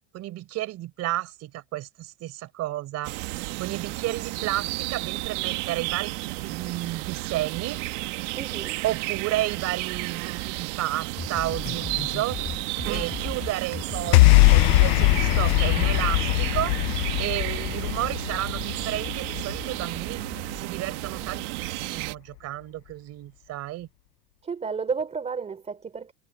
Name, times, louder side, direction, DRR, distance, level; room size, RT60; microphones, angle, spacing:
voice 1, 0.1-3.1 3.6-7.8 8.8-12.4 12.9-16.8 17.2-20.2 20.5-23.9, right 15 dB, 45° right, 4.4 m, -32 dB
sound 1, 3.0-22.1, right 22 dB, 85° right, 1.4 m, -32 dB
voice 2, 8.3-8.8 24.4-26.1, right 5 dB, 20° right, 3.1 m, -32 dB
sound 2, 11.0-16.1, left 8 dB, 30° left, 5.6 m, -36 dB
sound 3, 14.1-20.6, left 24 dB, 80° left, 0.6 m, -21 dB
cardioid pair, 150°, 34 cm